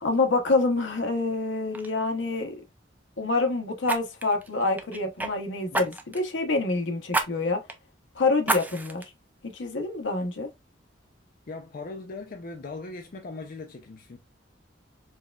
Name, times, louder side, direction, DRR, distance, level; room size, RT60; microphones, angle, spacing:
voice 1, 0.0-2.5 3.2-7.6 8.1-9.1 9.4-10.5, left 3 dB, 75° left, 0.8 m, -26 dB
Fire, 1.2-1.4 1.7-1.9 3.8-5.3 5.7-6.3 7.1-7.3 7.7-7.8 8.4-9.0 9.6-9.7, right 2 dB, 10° right, 0.4 m, -29 dB
voice 2, 11.5-14.2, left 3 dB, 50° left, 0.5 m, -39 dB
4.5 x 2.3 x 2.2 m
head